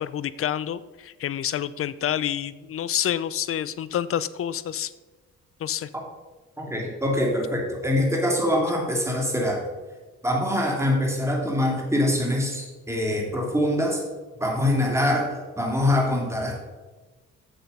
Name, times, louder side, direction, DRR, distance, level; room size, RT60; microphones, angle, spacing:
voice 1, 0.0-4.9 5.6-5.9, left 10 dB, 50° left, 17 dB, 0.5 m, -28 dB
voice 2, 6.6-9.6 10.2-14.0 14.4-16.6, left 1 dB, 10° right, 0 dB, 2.5 m, -24 dB
7.7 x 6.9 x 5.4 m, 1.2 s
cardioid pair, 90°, 30 cm